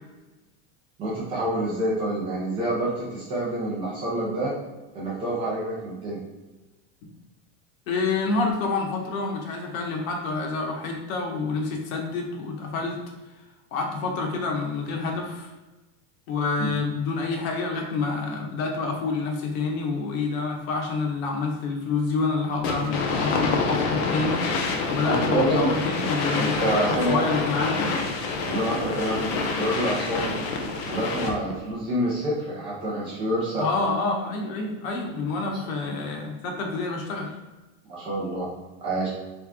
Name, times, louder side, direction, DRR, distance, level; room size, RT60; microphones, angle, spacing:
voice 1, 1.0-4.5 4.9-6.2 16.6-16.7 25.3-25.7 26.3-27.3 28.4-30.4 30.9-33.7 35.5-35.6 37.9-38.5 38.8-39.1, right 1 dB, 15° right, -7 dB, 0.3 m, -27 dB
voice 2, 7.9-13.0 13.7-15.5 16.3-24.5 24.9-26.5 27.1-28.0 33.6-37.3, left 4 dB, 85° left, 1 dB, 1.1 m, -28 dB
sound 1, 22.6-31.5, left 4 dB, 35° left, 0.5 m, -27 dB
3.5 x 3.4 x 3.6 m, 1.1 s
supercardioid pair, 180°, 40 cm